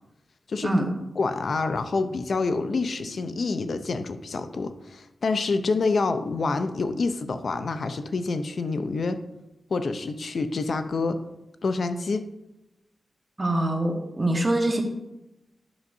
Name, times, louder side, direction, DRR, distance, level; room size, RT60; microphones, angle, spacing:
voice 1, 1.2-9.2 9.7-11.2 11.6-12.2, left 3 dB, 65° left, 9 dB, 0.5 m, -27 dB
voice 2, 13.4-14.8, right 1 dB, 25° right, 2 dB, 1.3 m, -24 dB
11.0 x 6.6 x 2.7 m, 0.92 s
wide cardioid pair, 80°, 0 cm